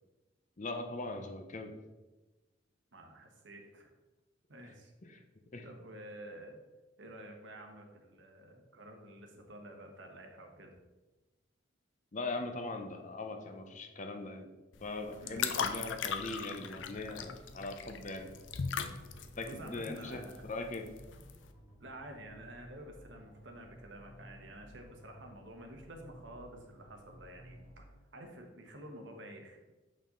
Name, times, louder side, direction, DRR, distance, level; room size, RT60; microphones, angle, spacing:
voice 1, 0.6-1.7 5.0-5.2 5.5-5.7 12.1-14.5 14.8-18.3 19.4-20.9, left 2 dB, 40° left, 5 dB, 0.7 m, -40 dB
voice 2, 2.9-3.9 4.5-4.9 5.6-6.6 7.0-10.7 15.2-15.4 19.5-20.5 21.8-29.7, right 1 dB, 70° right, 3 dB, 1.2 m, -50 dB
sound 1, 14.7-21.5, left 7 dB, 75° left, 0.5 m, -39 dB
sound 2, 15.5-27.9, equal, 15° right, 2.1 m, -56 dB
6.9 x 5.5 x 3.8 m, 1.1 s
head